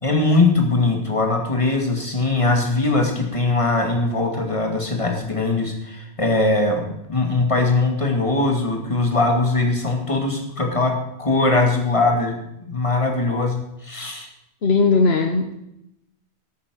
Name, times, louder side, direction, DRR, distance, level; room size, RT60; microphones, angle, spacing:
voice 1, 0.0-10.9 11.2-12.4 12.7-14.3, left 2 dB, 30° left, 3 dB, 2.3 m, -21 dB
voice 2, 14.6-15.5, left 4 dB, 70° left, 6 dB, 1.2 m, -18 dB
12.5 x 8.8 x 6.2 m, 0.83 s
omnidirectional pair, 1.1 m